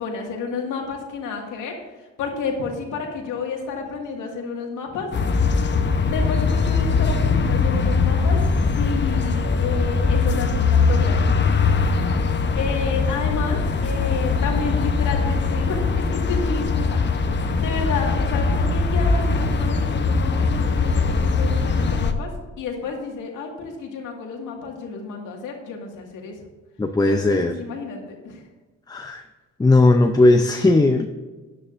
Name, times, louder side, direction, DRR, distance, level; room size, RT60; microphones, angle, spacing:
voice 1, 0.0-1.7 2.0-5.1 6.0-8.4 8.8-11.3 12.5-17.3 17.6-22.3 22.6-26.3 27.1-28.4, left 4 dB, 85° left, 1 dB, 2.0 m, -30 dB
sound 1, 5.1-22.1, left 4 dB, 35° left, 0.9 m, -21 dB
voice 2, 26.8-27.5 28.9-29.2 29.6-31.1, left 2 dB, 15° left, 6 dB, 0.6 m, -17 dB
14.0 x 9.9 x 2.6 m, 1.3 s
cardioid pair, 90°, 30 cm